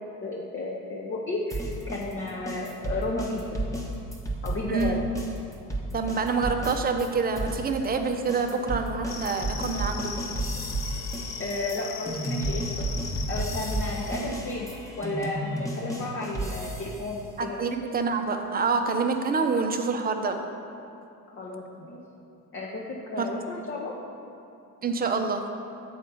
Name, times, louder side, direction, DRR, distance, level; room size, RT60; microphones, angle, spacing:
voice 1, 0.2-3.6 4.4-5.0 11.4-12.9 13.3-14.7 15.0-17.6 21.3-22.0 22.5-24.0, left 2 dB, 25° left, -2 dB, 0.9 m, -33 dB
sound 1, 1.5-7.1 7.4-17.1, right 1 dB, 5° left, 1.2 m, -32 dB
voice 2, 4.7-5.0 5.9-10.2 17.4-20.4 23.2-23.3 24.8-25.4, right 4 dB, 20° right, 5 dB, 0.6 m, -27 dB
sound 2, 9.1-14.4, left 6 dB, 55° left, 0.8 m, -39 dB
8.4 x 4.3 x 5.4 m, 2.7 s
hypercardioid pair, 65°, 47 cm